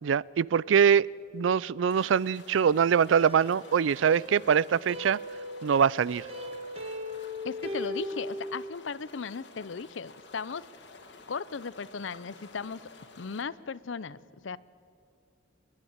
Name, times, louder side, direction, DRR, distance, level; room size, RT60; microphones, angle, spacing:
voice 1, 0.0-1.1 1.3-5.2 5.6-6.2, right 7 dB, 90° right, 23 dB, 0.4 m, -23 dB
sound 1, 1.9-13.4, left 3 dB, 70° left, 2.1 m, -52 dB
sound 2, 2.5-8.7, left 1 dB, 30° right, 1.6 m, -39 dB
voice 2, 7.4-10.7 11.3-12.9 13.2-14.6, left 5 dB, 85° left, 19 dB, 0.6 m, -37 dB
28.0 x 11.5 x 8.8 m, 2.7 s
head